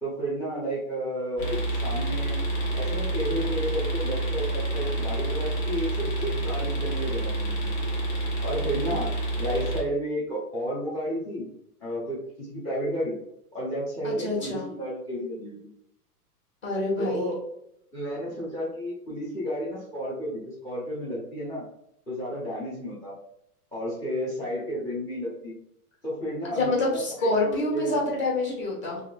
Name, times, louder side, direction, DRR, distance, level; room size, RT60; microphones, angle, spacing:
voice 1, 0.0-2.4 2.7-7.7 8.4-9.1 9.4-11.5 11.8-13.2 13.5-15.6 17.0-17.4 17.9-21.6 22.1-23.1 23.7-25.5 26.0-28.0, equal, 10° left, -8 dB, 0.5 m, -32 dB
sound 1, 1.4-9.8, right 2 dB, 45° left, 1.1 m, -28 dB
voice 2, 14.0-14.7 16.6-17.3 26.5-29.0, left 2 dB, 25° left, -2 dB, 1.1 m, -27 dB
3.5 x 2.6 x 2.2 m, 0.76 s
hypercardioid pair, 135°, 46 cm